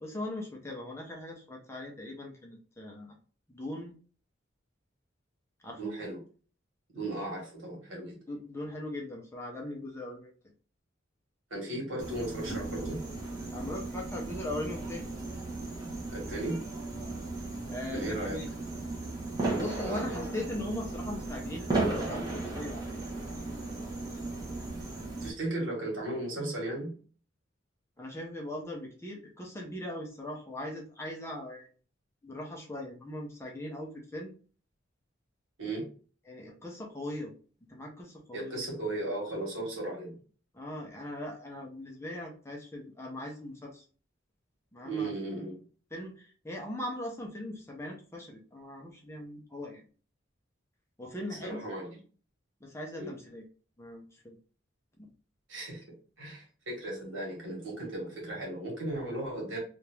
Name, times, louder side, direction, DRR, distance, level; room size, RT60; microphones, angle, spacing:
voice 1, 0.0-3.1 3.5-3.9 5.6-5.9 8.3-10.3 13.5-15.0 17.7-18.5 19.6-22.8 28.0-31.7 32.2-34.3 36.3-37.3 37.7-38.5 40.5-43.8 44.7-45.1 45.9-49.8 51.0-51.6 52.6-53.4 53.8-54.4, left 1 dB, 15° left, 0 dB, 0.6 m, -39 dB
voice 2, 5.8-6.2 6.9-8.2 11.5-13.0 16.1-16.6 17.9-18.4 19.8-20.4 25.2-26.9 35.6-35.9 38.3-40.2 44.8-45.6 51.3-52.0 52.9-53.1 55.5-55.8 56.2-59.6, right 1 dB, 80° right, -1 dB, 1.6 m, -36 dB
sound 1, 12.0-25.3, right 2 dB, 20° right, 1.0 m, -36 dB
2.9 x 2.5 x 3.3 m, 0.40 s
head